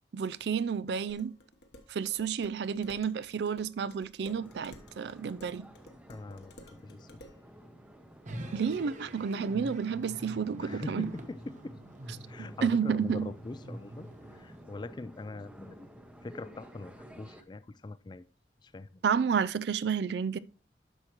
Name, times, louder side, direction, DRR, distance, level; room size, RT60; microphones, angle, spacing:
voice 1, 0.1-1.3 1.9-5.7 8.5-11.1 12.6-13.3 19.0-20.4, right 6 dB, 65° right, 0.4 m, -31 dB
Dishes pots and pans, 1.1-7.4, left 1 dB, 60° left, 1.1 m, -54 dB
sound 1, 4.2-17.4, equal, 5° right, 0.7 m, -53 dB
voice 2, 6.1-7.2 10.6-11.8 12.3-15.9 16.2-18.2 18.6-18.9, left 2 dB, 25° left, 0.3 m, -43 dB
sound 2, 8.2-14.6, right 1 dB, 40° right, 1.0 m, -45 dB
10.0 x 6.4 x 3.0 m
head